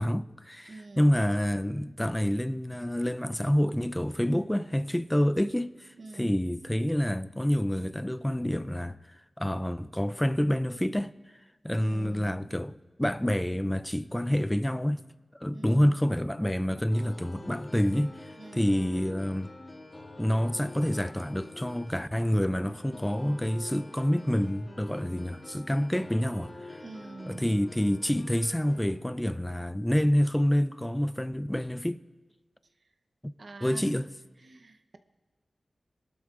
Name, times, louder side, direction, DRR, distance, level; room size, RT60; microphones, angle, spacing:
voice 1, 0.0-9.0 9.4-11.1 11.6-12.7 13.0-15.0 15.4-19.5 20.2-26.8 27.3-32.0 33.6-34.1, equal, 10° left, 0.4 m, -28 dB
voice 2, 0.7-1.2 6.0-6.4 11.7-12.5 15.5-16.0 18.4-19.0 26.8-27.6 33.4-33.9 34.4-35.0, right 3 dB, 65° right, 0.7 m, -45 dB
sound 1, 16.9-28.9, left 2 dB, 40° left, 2.2 m, -46 dB
21.5 x 12.0 x 2.4 m
cardioid pair, 55°, 0 cm